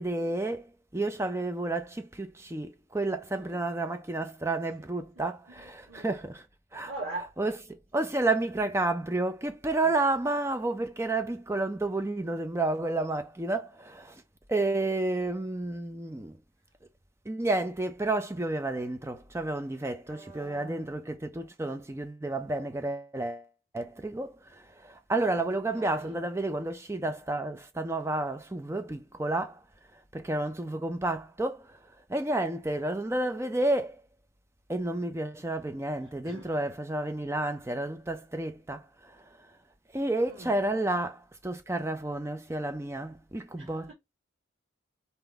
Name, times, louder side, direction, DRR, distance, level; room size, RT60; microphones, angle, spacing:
voice 1, 0.0-6.5 6.7-6.9 7.4-14.2 14.5-16.4 17.3-23.5 23.7-29.6 30.1-31.8 32.1-34.0 34.7-39.3 39.9-43.9, right 2 dB, 15° right, 0.5 m, -31 dB
voice 2, 3.3-3.6 4.6-4.7 5.2-5.3 5.6-6.2 6.9-7.3 8.0-8.1 15.2-15.3 20.1-20.9 25.3-26.2 36.2-36.5 40.2-40.6 43.6-43.9, right 2 dB, 85° right, 2.7 m, -43 dB
4.1 x 3.8 x 3.4 m
head